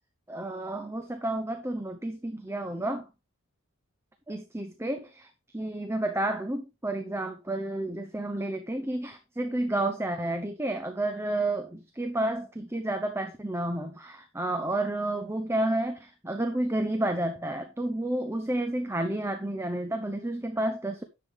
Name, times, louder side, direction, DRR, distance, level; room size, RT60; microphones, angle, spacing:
voice 1, 0.3-3.1 4.3-21.0, right 1 dB, 10° right, 0.9 m, -31 dB
10.5 x 7.2 x 3.6 m
head